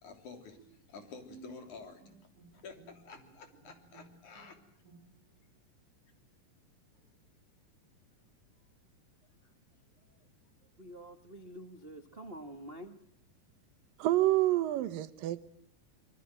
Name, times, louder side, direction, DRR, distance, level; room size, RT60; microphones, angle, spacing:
voice 1, 0.0-2.0 2.6-4.6, left 5 dB, 60° left, 4.7 m, -50 dB
Bowed string instrument, 0.6-5.4, right 5 dB, 70° right, 4.4 m, -58 dB
voice 2, 10.8-13.0, right 1 dB, 35° right, 0.9 m, -47 dB
voice 3, 14.0-15.4, right 15 dB, 85° right, 2.9 m, -28 dB
25.0 x 23.5 x 7.7 m
omnidirectional pair, 3.8 m